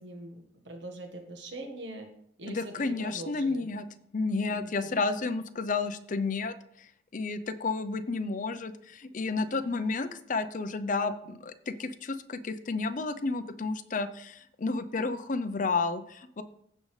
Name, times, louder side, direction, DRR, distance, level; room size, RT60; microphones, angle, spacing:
voice 1, 0.0-2.1 2.4-3.7 4.5-5.0, right 1 dB, 70° right, 3 dB, 1.5 m, -43 dB
voice 2, 2.5-3.8 4.1-16.4, left 3 dB, 45° left, 12 dB, 0.6 m, -31 dB
15.0 x 5.3 x 3.2 m, 0.72 s
head